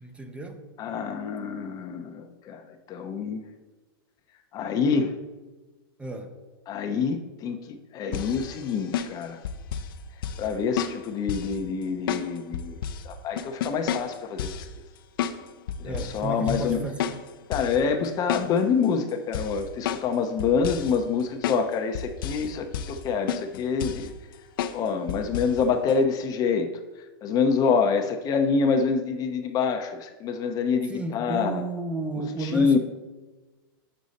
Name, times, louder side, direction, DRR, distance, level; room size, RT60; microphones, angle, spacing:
voice 1, 0.0-0.6 6.0-6.3 15.8-17.2 30.9-32.8, right 2 dB, 10° right, 6 dB, 0.6 m, -32 dB
voice 2, 0.8-2.6 2.9-3.4 4.5-5.1 6.7-7.6 7.9-9.4 10.4-12.8 13.0-14.6 15.8-16.8 17.5-24.1 24.7-26.7 27.2-31.6 32.4-32.8, left 5 dB, 30° left, 7 dB, 0.7 m, -26 dB
sound 1, 8.1-9.9 10.2-10.5 10.8-11.6 12.1-13.0 13.4-14.7 15.2-15.4 15.7-16.2 16.5-16.7 17.0-17.8 18.1-18.8 19.3-20.1 20.4-21.0 21.4-21.6 22.0-22.5 22.7-23.0 23.3-24.1 24.6-24.8 25.1-25.5 25.9-26.0, left 8 dB, 70° left, 0.6 m, -31 dB
6.5 x 6.1 x 4.1 m, 1.2 s
hypercardioid pair, 130°, 12 cm